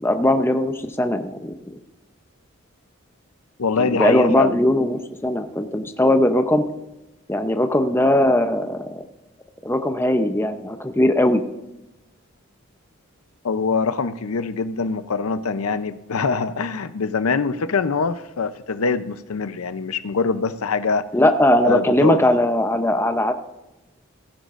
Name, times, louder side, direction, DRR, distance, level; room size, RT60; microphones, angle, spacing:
voice 1, 0.0-1.5 3.8-6.6 7.3-9.0 9.6-11.4 21.1-23.3, left 1 dB, 10° left, 7 dB, 0.6 m, -19 dB
voice 2, 3.6-4.6 13.4-21.0 21.6-22.2, left 4 dB, 85° left, 13 dB, 0.6 m, -23 dB
16.0 x 10.5 x 2.5 m, 0.98 s
head